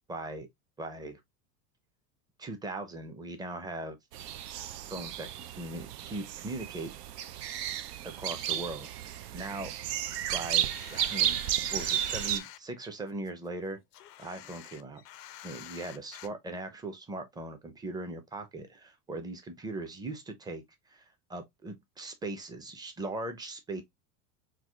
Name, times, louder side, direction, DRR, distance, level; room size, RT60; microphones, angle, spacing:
voice 1, 0.1-0.5 0.8-1.2 2.4-4.0 4.9-6.9 8.0-9.7 10.3-11.4 11.7-13.8 14.2-15.0 15.4-23.8, right 2 dB, 10° right, 0.5 m, -39 dB
sound 1, 4.1-12.4, right 11 dB, 80° right, 0.5 m, -33 dB
sound 2, 10.0-12.6 13.1-16.3, left 12 dB, 80° left, 0.6 m, -48 dB
4.6 x 2.1 x 2.2 m
hypercardioid pair, 95°, 47 cm